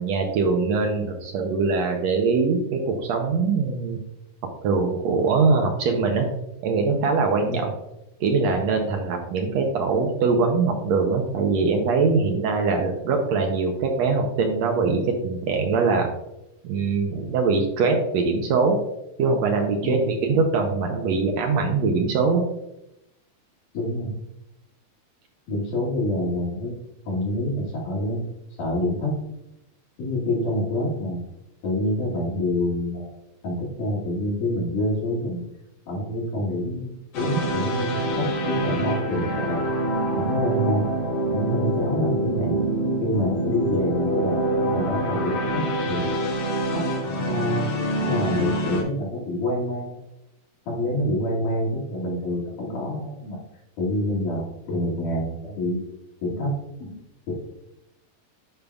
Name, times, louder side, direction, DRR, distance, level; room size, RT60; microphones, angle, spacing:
voice 1, 0.0-4.0 4.6-6.3 6.6-7.7 8.2-16.1 16.6-18.8 19.2-22.4, right 4 dB, 75° right, 3 dB, 1.7 m, -22 dB
voice 2, 23.7-24.2 25.5-26.8 27.1-28.2 28.6-29.1 30.0-31.2 31.6-33.1 33.4-35.4 35.9-36.9 37.2-39.7 40.2-40.9 41.3-42.5 43.0-45.6 45.9-46.1 46.7-47.7 48.0-50.0 50.7-53.4 53.8-55.8 56.2-56.9, left 1 dB, 80° left, -5 dB, 3.7 m, -27 dB
sound 1, 37.1-48.8, right 1 dB, 60° left, 2.0 m, -26 dB
10.5 x 5.5 x 2.3 m, 0.87 s
omnidirectional pair, 3.6 m